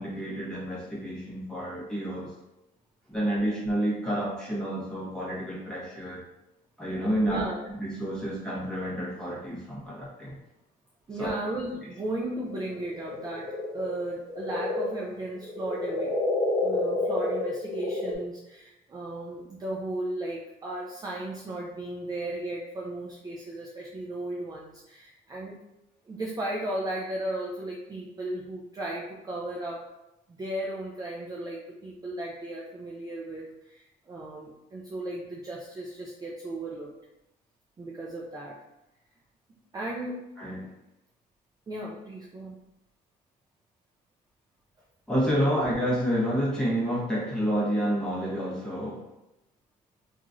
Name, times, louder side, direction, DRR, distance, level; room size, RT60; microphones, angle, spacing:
voice 1, 0.0-2.3 3.1-6.3 6.8-7.4 7.8-10.4 11.2-11.3 40.4-40.7 45.1-49.0, equal, 5° left, -6 dB, 1.2 m, -29 dB
voice 2, 7.2-7.6 11.1-16.1 16.6-25.5 26.1-30.0 30.3-36.9 37.8-38.6 39.7-40.3 41.7-42.6, right 1 dB, 20° right, -3 dB, 0.4 m, -35 dB
sound 1, 12.5-18.1, left 2 dB, 20° left, 0.6 m, -29 dB
2.9 x 2.5 x 2.4 m, 0.92 s
cardioid pair, 110°, 17 cm